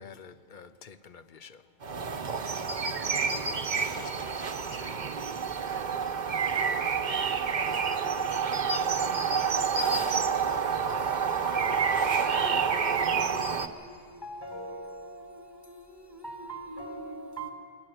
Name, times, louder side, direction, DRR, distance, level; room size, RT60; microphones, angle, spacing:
voice 1, 0.0-1.6 3.7-4.4 4.7-5.2, left 6 dB, 50° left, 0.8 m, -49 dB
sound 1, 1.8-13.7, right 6 dB, 40° right, 0.9 m, -28 dB
voice 2, 7.5-8.3 9.7-10.4 12.2-12.7, left 2 dB, 90° left, 3.9 m, -45 dB
voice 3, 9.8-12.2 12.7-17.5, right 1 dB, 20° left, 2.6 m, -43 dB
21.5 x 18.0 x 7.9 m
omnidirectional pair, 1.3 m